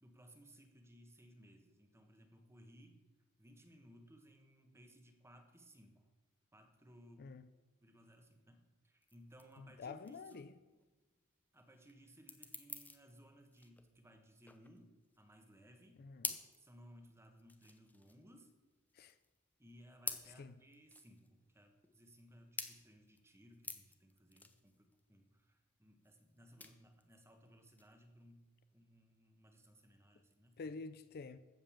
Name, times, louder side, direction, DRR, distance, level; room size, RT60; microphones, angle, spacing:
voice 1, 0.0-3.0 3.4-6.1 6.5-7.4 7.8-10.5 11.5-16.1 16.6-18.5 19.6-30.8, equal, 10° right, 1.3 m, -62 dB
sound 1, 9.0-28.8, left 3 dB, 10° left, 0.7 m, -50 dB
voice 2, 9.6-10.5 16.0-16.3 18.9-19.1 20.3-20.5 30.6-31.4, left 4 dB, 45° left, 0.4 m, -48 dB
14.5 x 5.4 x 7.2 m
head